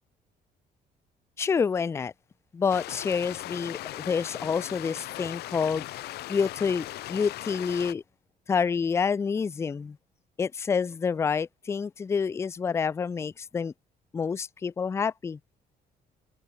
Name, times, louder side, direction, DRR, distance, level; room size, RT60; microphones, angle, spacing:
voice 1, 1.4-2.1 2.5-5.9 6.3-8.0 8.5-10.0 10.4-13.7 14.1-15.4, left 6 dB, 15° left, 0.4 m, -28 dB
sound 1, 2.7-7.9, left 16 dB, 90° left, 1.0 m, -38 dB
cardioid pair, 175°, 16 cm